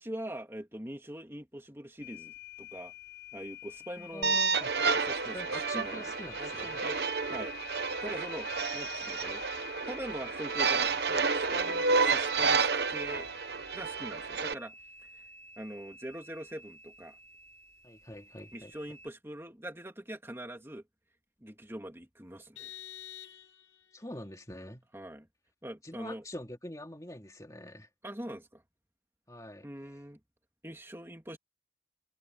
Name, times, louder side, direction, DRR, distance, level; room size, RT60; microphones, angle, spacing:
voice 1, 0.0-2.9 3.3-4.4 4.9-6.1 6.4-7.0 7.3-7.5 8.0-9.4 9.9-13.3 13.7-14.8 15.1-15.2 15.6-17.2 18.5-20.8 21.4-22.8 24.9-25.3 25.6-26.2 28.0-28.6 29.6-30.2 30.6-31.4, right 1 dB, 15° right, 2.5 m, -43 dB
sound 1, 2.0-19.1, left 9 dB, 60° left, 6.5 m, -48 dB
voice 2, 4.0-4.7 5.3-6.8 17.8-18.7 23.9-24.9 25.8-27.9 29.3-29.7, left 1 dB, 20° left, 2.7 m, -44 dB
sound 2, 4.2-14.5, right 4 dB, 60° right, 1.1 m, -30 dB
Vehicle horn car horn honking, 22.6-24.0, left 11 dB, 85° left, 2.6 m, -47 dB
head